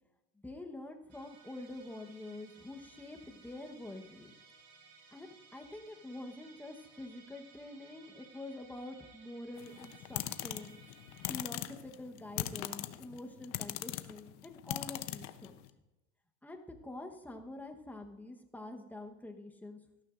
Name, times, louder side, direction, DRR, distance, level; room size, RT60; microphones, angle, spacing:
voice 1, 0.3-4.3 5.1-10.7 11.3-15.5 16.4-19.8, left 2 dB, 5° left, 4 dB, 1.0 m, -46 dB
Musical instrument, 1.1-11.4, right 4 dB, 60° right, 4.1 m, -60 dB
sound 1, 9.6-15.7, left 15 dB, 55° left, 0.8 m, -40 dB
17.5 x 12.5 x 2.5 m, 1.0 s
supercardioid pair, 130°, 35 cm